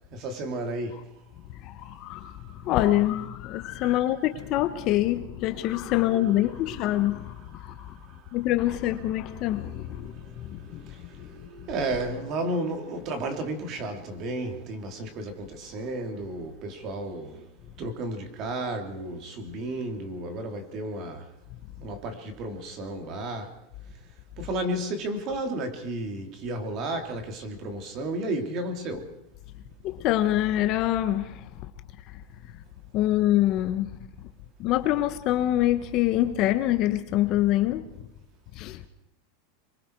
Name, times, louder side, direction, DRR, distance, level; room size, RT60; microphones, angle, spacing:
voice 1, 0.1-1.0 3.8-4.1 5.9-7.5 8.1-8.4 9.7-17.5 17.8-21.3 21.8-23.5 24.4-29.1, right 1 dB, 35° right, 3.1 m, -33 dB
voice 2, 1.6-2.4 2.6-7.9 8.3-10.1 10.5-10.8 29.8-31.5 32.9-33.9 34.6-37.8 38.6-38.8, left 14 dB, 35° left, 1.2 m, -25 dB
27.0 x 23.5 x 4.8 m
supercardioid pair, 165°, 0 cm